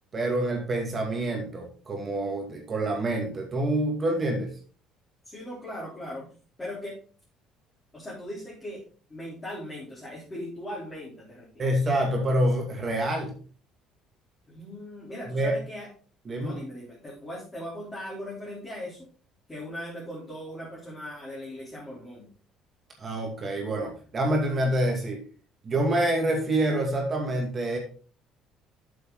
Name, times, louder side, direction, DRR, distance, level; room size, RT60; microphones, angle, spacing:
voice 1, 0.1-4.5 11.6-13.3 15.3-15.6 16.3-16.6 23.0-25.2 25.6-27.8, right 1 dB, 30° right, 0 dB, 2.3 m, -27 dB
voice 2, 5.2-6.3 6.6-7.0 7.9-8.8 9.1-11.7 14.5-15.9 16.4-19.1 19.5-22.3, left 1 dB, 15° left, -6 dB, 3.8 m, -39 dB
8.3 x 7.3 x 3.8 m, 0.40 s
cardioid pair, 130°, 0 cm